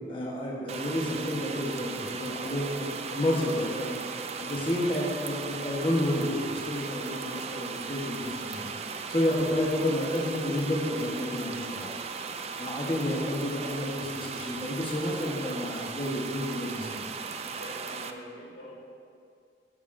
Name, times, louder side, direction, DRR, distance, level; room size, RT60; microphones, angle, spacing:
voice 1, 0.1-3.9 4.4-8.7 9.1-11.9 12.6-17.0, left 1 dB, 30° left, -4 dB, 1.1 m, -30 dB
sound 1, 0.7-18.1, right 5 dB, 35° right, 0.4 m, -37 dB
voice 2, 17.5-18.7, equal, 85° left, -3 dB, 2.2 m, -44 dB
12.0 x 9.8 x 2.5 m, 2.3 s
head